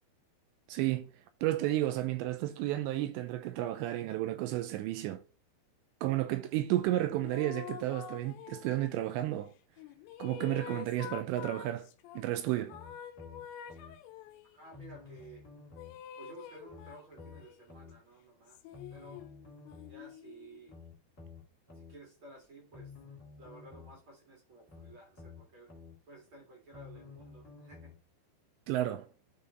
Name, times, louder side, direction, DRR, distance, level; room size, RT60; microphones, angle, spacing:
voice 1, 0.7-1.1 1.4-5.2 6.0-9.5 10.2-11.9 12.2-12.8 28.7-29.1, right 15 dB, 85° right, 2.7 m, -32 dB
sound 1, 6.9-9.1 9.8-12.2 12.7-14.6 15.8-17.7 18.5-20.8, left 10 dB, 85° left, 3.0 m, -47 dB
sound 2, 12.7-14.0 14.7-16.0 16.7-18.0 18.7-20.0 20.7-22.0 22.7-24.0 24.7-26.0 26.7-28.0 28.7-28.8, left 5 dB, 20° left, 2.3 m, -51 dB
voice 2, 14.5-15.4 16.2-18.6 18.9-19.3 19.9-20.7 21.7-22.9 23.4-25.7 26.1-27.9, right 3 dB, 40° right, 2.2 m, -54 dB
11.0 x 3.8 x 3.9 m
omnidirectional pair, 5.3 m